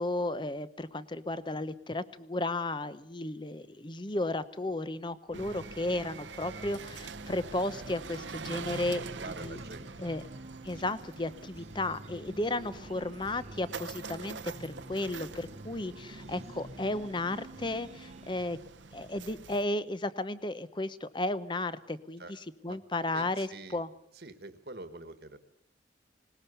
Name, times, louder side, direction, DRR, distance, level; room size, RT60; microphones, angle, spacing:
voice 1, 0.0-9.0 9.4-9.6 10.0-10.2 10.6-18.6 18.9-22.2 22.6-23.9, left 2 dB, 25° left, 15 dB, 0.8 m, -34 dB
sound 1, 5.3-18.4, right 1 dB, 35° right, 1.1 m, -49 dB
sound 2, 5.3-19.6, right 4 dB, 90° right, 0.9 m, -45 dB
voice 2, 9.0-10.2 10.5-10.6 22.2-22.3 22.6-22.8 23.1-23.8 24.1-25.4, right 2 dB, 60° right, 9 dB, 1.4 m, -46 dB
20.0 x 19.0 x 6.9 m, 0.76 s
head